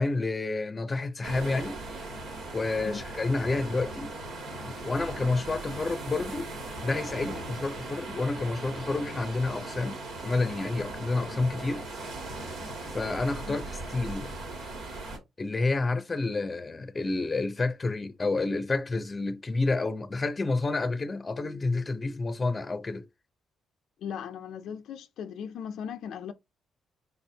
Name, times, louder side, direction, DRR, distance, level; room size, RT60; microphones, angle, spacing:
voice 1, 0.0-1.7 2.5-4.1 4.6-6.5 6.8-11.8 12.9-14.3 15.4-23.1, left 3 dB, 25° left, 0.6 m, -29 dB
sound 1, 1.2-15.2, right 2 dB, 75° right, 2.1 m, -38 dB
voice 2, 24.0-26.3, left 7 dB, 75° left, 0.4 m, -38 dB
4.2 x 4.0 x 2.7 m
cardioid pair, 90°, 0 cm